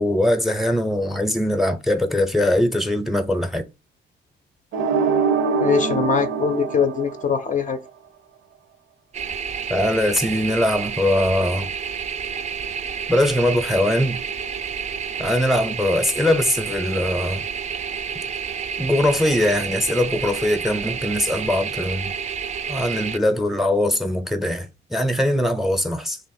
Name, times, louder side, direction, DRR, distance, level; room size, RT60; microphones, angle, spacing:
voice 1, 0.0-3.6 9.7-11.7 13.1-14.2 15.2-17.5 18.8-22.1 22.7-26.2, left 1 dB, ahead, 0.7 m, -21 dB
sound 1, 4.7-7.7, right 5 dB, 80° right, 0.6 m, -23 dB
voice 2, 5.6-7.8, left 6 dB, 40° left, 0.6 m, -22 dB
sound 2, 9.1-23.2, right 6 dB, 35° right, 0.4 m, -29 dB
3.0 x 2.5 x 4.2 m
cardioid pair, 90°, 20 cm